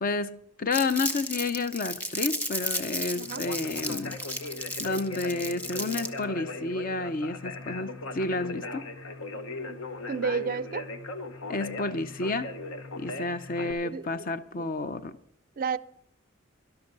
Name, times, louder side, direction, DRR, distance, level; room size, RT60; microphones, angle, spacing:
voice 1, 0.0-4.2 4.8-8.8 11.5-12.5 13.0-15.2, left 3 dB, 45° left, 0.6 m, -30 dB
Crumpling crinkling, 0.7-6.2, equal, 10° left, 1.2 m, -34 dB
Conversation, 3.2-13.7, left 2 dB, 75° left, 1.2 m, -38 dB
voice 2, 10.1-10.9 13.8-14.3 14.6-14.7 15.6-15.8, right 5 dB, 45° right, 0.4 m, -32 dB
12.5 x 12.0 x 5.3 m
head